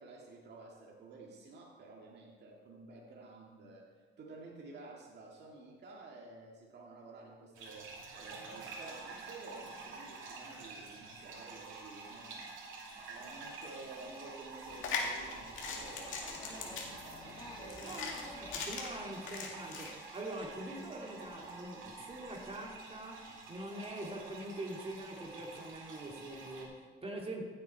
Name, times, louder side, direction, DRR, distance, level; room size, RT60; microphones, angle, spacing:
voice 1, 0.0-7.9 8.1-12.8 13.0-16.1 16.5-18.0, right 3 dB, 55° right, -2 dB, 2.0 m, -52 dB
sound 1, 7.5-26.6, right 3 dB, 85° right, 2.5 m, -49 dB
sound 2, 14.6-19.9, left 5 dB, 85° left, 2.1 m, -40 dB
sound 3, 14.7-19.8, left 2 dB, 20° left, 1.8 m, -52 dB
voice 2, 17.8-27.4, right 1 dB, 30° right, -1 dB, 2.7 m, -44 dB
15.0 x 7.8 x 4.5 m, 1.5 s
cardioid pair, 90°, 20 cm